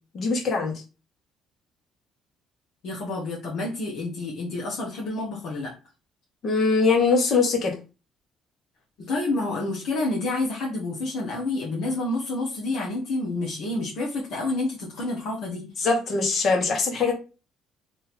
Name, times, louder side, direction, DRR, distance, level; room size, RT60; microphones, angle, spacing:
voice 1, 0.1-0.7 6.4-7.7 15.8-17.1, left 4 dB, 55° left, 1 dB, 1.6 m, -22 dB
voice 2, 2.8-5.7 9.0-15.6, left 2 dB, 70° left, -3 dB, 1.1 m, -29 dB
3.1 x 2.7 x 4.2 m, 0.31 s
supercardioid pair, 75°, 0 cm